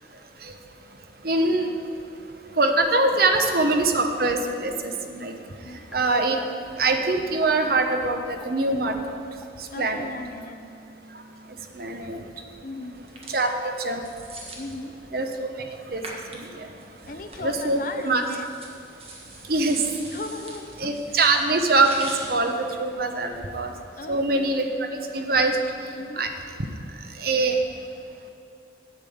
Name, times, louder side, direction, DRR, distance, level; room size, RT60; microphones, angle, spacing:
voice 1, 1.2-1.7 2.5-5.4 5.7-6.5 6.7-8.9 9.6-10.1 11.7-12.2 13.3-14.0 15.1-15.5 15.9-16.7 17.4-17.8 18.1-18.2 19.5-19.9 20.8-23.7 24.1-25.6 26.2-26.3 27.2-27.6, right 3 dB, 50° right, 5 dB, 0.9 m, -23 dB
sound 1, 5.9-6.0 6.4-6.5 6.9-7.0 7.4-7.5 7.9-8.0 8.4-8.5 8.9-9.0 9.4-9.5 9.9-11.7, right 1 dB, 5° right, 0.6 m, -47 dB
voice 2, 9.7-10.7 12.6-13.0 14.5-15.0 17.1-18.5 20.1-20.9 23.2-23.3 24.0-24.7 25.9-26.3, left 2 dB, 45° left, 7 dB, 0.6 m, -37 dB
sound 2, 12.9-23.7, right 2 dB, 30° right, 1.5 m, -44 dB
8.8 x 8.2 x 7.0 m, 2.6 s
head